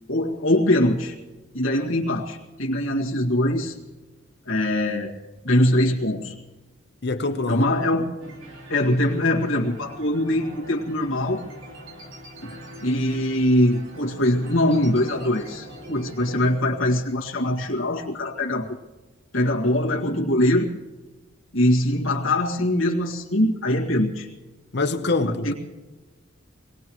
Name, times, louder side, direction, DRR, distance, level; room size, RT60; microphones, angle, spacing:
voice 1, 0.1-1.2 1.5-3.8 4.5-5.1 5.4-6.3 7.5-8.1 8.7-11.4 12.4-18.7 19.3-20.7 21.5-24.3 25.2-25.5, left 1 dB, 90° left, 1.9 m, -22 dB
voice 2, 7.0-7.7 24.7-25.5, left 2 dB, 55° left, 1.0 m, -24 dB
sound 1, 8.2-16.5, equal, 75° right, 2.5 m, -42 dB
24.5 x 19.0 x 3.1 m
head